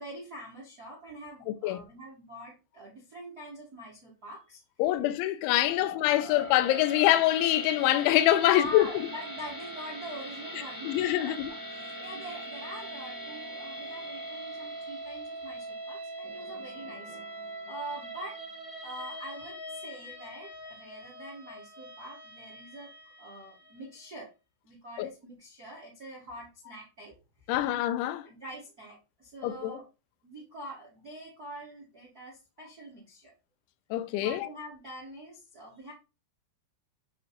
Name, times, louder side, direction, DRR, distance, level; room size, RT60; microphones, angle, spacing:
voice 1, 0.0-4.6 8.4-17.1 17.7-18.4 18.8-22.9 23.2-24.3 24.6-27.2 28.2-29.9 30.2-33.3 34.2-35.9, equal, 80° right, 0.8 m, -44 dB
voice 2, 4.8-8.9 10.9-11.5 25.0-25.1 27.5-28.3 29.4-29.8 33.9-34.5, left 14 dB, 80° left, 2.8 m, -25 dB
sound 1, 5.6-23.8, right 1 dB, 10° right, 1.3 m, -42 dB
9.2 x 3.2 x 4.4 m
omnidirectional pair, 6.0 m